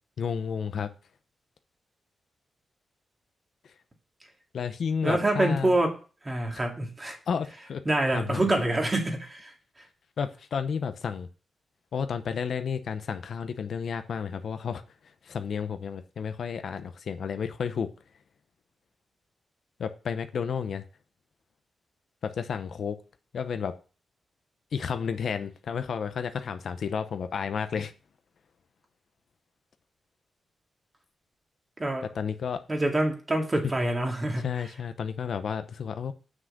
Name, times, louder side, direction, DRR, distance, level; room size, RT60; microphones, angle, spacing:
voice 1, 0.2-0.9 4.5-5.8 6.5-6.6 7.3-7.8 8.1-8.4 10.2-11.3 11.9-14.8 15.2-17.9 19.8-20.8 22.2-23.0 23.3-23.8 24.7-27.9 32.0-32.6 34.4-36.1, left 6 dB, 65° left, 0.8 m, -31 dB
voice 2, 5.0-5.9 6.2-7.2 7.9-9.5 31.8-32.0 32.7-34.4, right 1 dB, 20° right, 2.1 m, -26 dB
7.5 x 6.2 x 6.6 m
wide cardioid pair, 125°, 0 cm